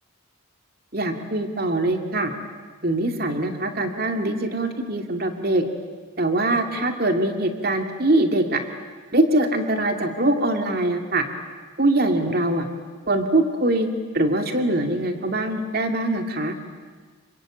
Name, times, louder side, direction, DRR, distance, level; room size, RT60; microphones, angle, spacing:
voice 1, 0.9-2.3 2.8-5.6 6.2-8.6 9.1-11.2 11.8-12.7 13.1-13.9 14.1-16.6, right 1 dB, 45° right, 5 dB, 2.3 m, -22 dB
27.5 x 24.0 x 9.0 m, 1.5 s
head